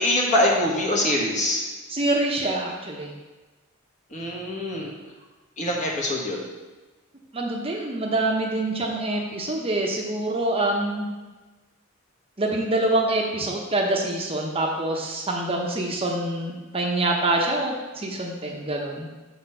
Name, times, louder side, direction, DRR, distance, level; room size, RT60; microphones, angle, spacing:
voice 1, 0.0-1.6 4.1-4.9 5.6-6.5, left 1 dB, 35° left, -2 dB, 1.3 m, -24 dB
voice 2, 1.9-3.1 7.3-11.1 12.4-19.1, right 2 dB, 25° right, 0 dB, 0.8 m, -25 dB
6.8 x 4.3 x 5.4 m, 1.2 s
head